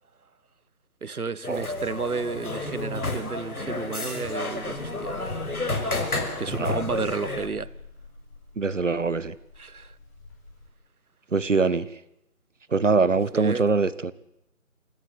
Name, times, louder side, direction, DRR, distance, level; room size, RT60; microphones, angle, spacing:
voice 1, 1.0-5.2 6.4-7.7 9.6-10.0 13.3-13.6, right 4 dB, 85° right, 1.4 m, -32 dB
sound 1, 1.4-7.5, left 2 dB, 85° left, 6.2 m, -31 dB
Buzz, 4.5-10.7, left 3 dB, 10° left, 4.1 m, -47 dB
voice 2, 6.5-6.8 8.6-9.3 11.3-11.9 12.7-14.1, right 4 dB, 60° right, 1.7 m, -23 dB
29.5 x 16.5 x 8.2 m
figure-of-eight pair, 175°, 43 cm